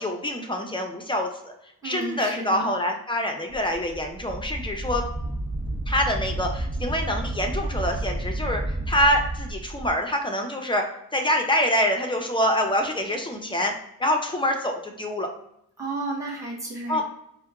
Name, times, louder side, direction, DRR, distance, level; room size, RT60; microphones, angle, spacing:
voice 1, 0.0-1.5 1.8-5.0 5.9-10.8 11.1-13.7 14.0-15.3 16.9-17.0, equal, 10° left, 3 dB, 0.6 m, -25 dB
voice 2, 1.8-2.7 15.8-17.0, right 2 dB, 10° right, -5 dB, 1.2 m, -32 dB
Wind, 3.5-9.9, right 1 dB, 30° right, 1.2 m, -31 dB
4.2 x 2.2 x 3.6 m, 0.77 s
wide cardioid pair, 120°, 40 cm